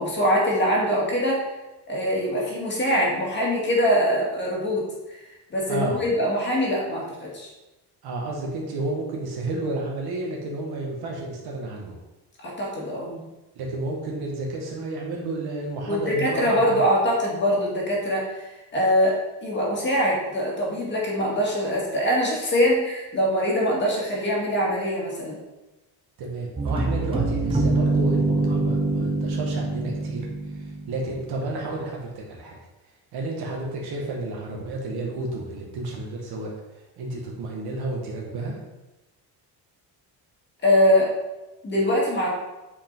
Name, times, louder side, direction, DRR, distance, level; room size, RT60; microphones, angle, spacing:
voice 1, 0.0-1.4 1.9-5.2 5.5-7.5 12.4-13.2 15.9-25.4 40.6-41.1 41.6-42.3, equal, 25° left, -4 dB, 2.0 m, -23 dB
voice 2, 5.7-6.0 8.0-12.0 13.6-16.8 26.2-30.3 30.5-32.6 33.1-36.5 37.0-38.6, right 2 dB, 65° right, -1 dB, 2.0 m, -31 dB
sound 1, 26.6-31.4, right 2 dB, 15° right, 0.6 m, -25 dB
8.4 x 5.1 x 4.0 m, 1.0 s
cardioid pair, 170°, 41 cm